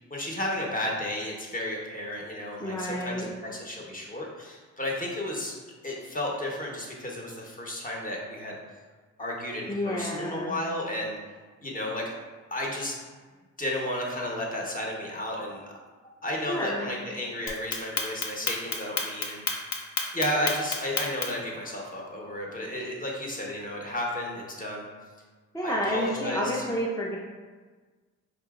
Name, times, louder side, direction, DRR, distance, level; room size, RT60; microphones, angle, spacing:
voice 1, 0.1-5.5 5.8-8.6 9.2-11.2 11.6-12.1 12.5-13.0 13.6-15.6 16.2-19.7 20.1-24.9 25.6-26.6, left 1 dB, 25° left, -2 dB, 0.9 m, -33 dB
voice 2, 2.6-3.3 9.7-10.6 16.5-16.9 25.5-27.2, equal, 10° left, -4 dB, 0.4 m, -30 dB
Clock, 17.5-21.5, left 5 dB, 65° left, 0.7 m, -29 dB
4.9 x 2.7 x 2.3 m, 1.4 s
cardioid pair, 90°, 30 cm